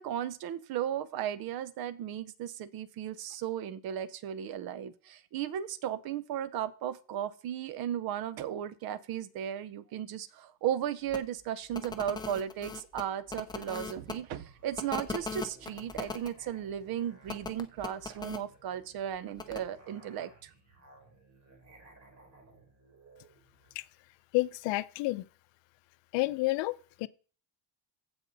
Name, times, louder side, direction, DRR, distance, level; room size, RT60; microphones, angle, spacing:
voice 1, 0.0-20.5, right 10 dB, 55° right, 0.8 m, -35 dB
sound 1, 11.1-11.2 11.7-14.1 14.8-16.3 17.3-18.4 19.4-19.6, left 4 dB, 10° left, 0.4 m, -39 dB
Musical instrument, 13.7-23.8, right 3 dB, 35° right, 3.9 m, -59 dB
voice 2, 24.3-25.3 26.1-27.1, left 21 dB, 75° left, 0.7 m, -30 dB
15.0 x 5.3 x 4.0 m
cardioid pair, 170°, 45 cm